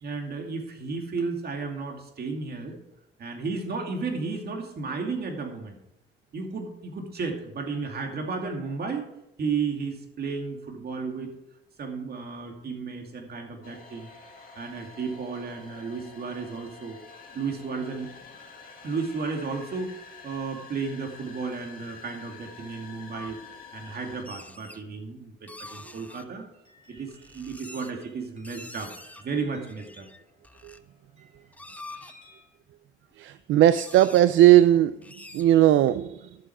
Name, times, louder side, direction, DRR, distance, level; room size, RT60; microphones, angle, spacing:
voice 1, 0.0-2.7 3.2-5.8 6.3-9.0 9.4-11.3 11.8-14.1 14.5-17.0 17.3-18.1 18.8-19.9 20.2-23.4 23.7-26.4 26.9-28.9 29.2-30.0, right 4 dB, 50° right, 2 dB, 2.5 m, -33 dB
sound 1, 13.6-24.2, left 5 dB, 45° left, 2.2 m, -48 dB
sound 2, 23.1-23.3 24.1-24.8 25.5-26.2 27.0-28.0 28.4-29.2 29.7-30.8 31.3-32.1 33.1-33.2 33.4-33.5 33.7-34.2 35.0-35.4, left 2 dB, 5° left, 0.6 m, -45 dB
sound 3, 26.3-32.5, equal, 35° right, 4.4 m, -58 dB
voice 2, 33.2-36.4, right 13 dB, 75° right, 13 dB, 0.4 m, -19 dB
11.5 x 7.5 x 4.8 m, 0.84 s
cardioid pair, 90°, 20 cm